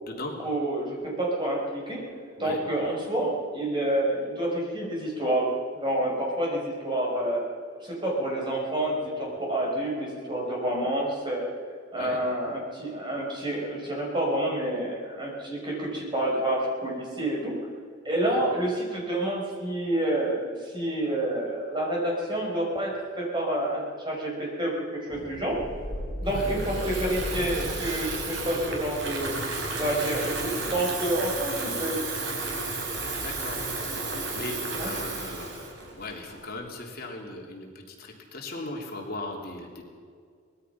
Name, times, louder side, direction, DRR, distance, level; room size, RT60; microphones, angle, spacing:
voice 1, 0.4-2.1 2.4-7.5 7.8-11.5 11.9-17.5 18.0-25.6 26.2-29.3 29.8-32.0 34.7-34.9, right 1 dB, 25° right, -2 dB, 5.4 m, -28 dB
sound 1, 25.1-34.3, equal, 20° left, 6.5 m, -38 dB
Water tap faucet / Fill (with liquid), 26.3-36.5, right 3 dB, 65° right, 4.2 m, -33 dB
voice 2, 33.2-33.6 34.0-39.8, left 2 dB, 50° left, 0 dB, 3.3 m, -38 dB
24.5 x 20.0 x 5.9 m, 2.1 s
head